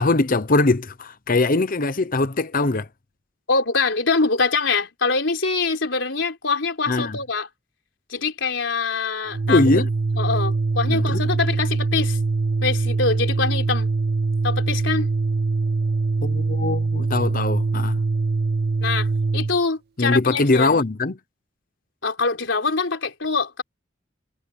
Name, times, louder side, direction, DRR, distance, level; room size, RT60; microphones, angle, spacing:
voice 1, 0.0-2.9 6.9-7.2 9.5-9.9 10.9-11.2 16.2-18.0 20.0-21.2, left 3 dB, 50° left, 0.9 m, -21 dB
voice 2, 3.5-7.5 8.1-9.8 10.2-12.2 12.6-13.9 14.4-15.1 18.8-19.1 19.3-20.8 22.0-23.6, left 4 dB, 85° left, 3.7 m, -24 dB
Organ, 9.3-19.6, right 3 dB, 55° right, 0.5 m, -23 dB
head